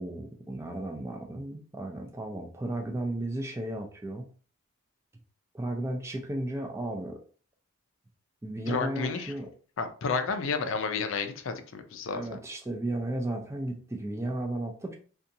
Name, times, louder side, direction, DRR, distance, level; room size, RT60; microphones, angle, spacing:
voice 1, 0.0-4.3 5.5-7.2 8.4-9.5 12.1-14.9, right 1 dB, 15° right, 3 dB, 0.3 m, -34 dB
voice 2, 8.7-9.3 9.8-12.2, left 5 dB, 65° left, 7 dB, 0.4 m, -31 dB
2.7 x 2.3 x 2.6 m, 0.41 s
head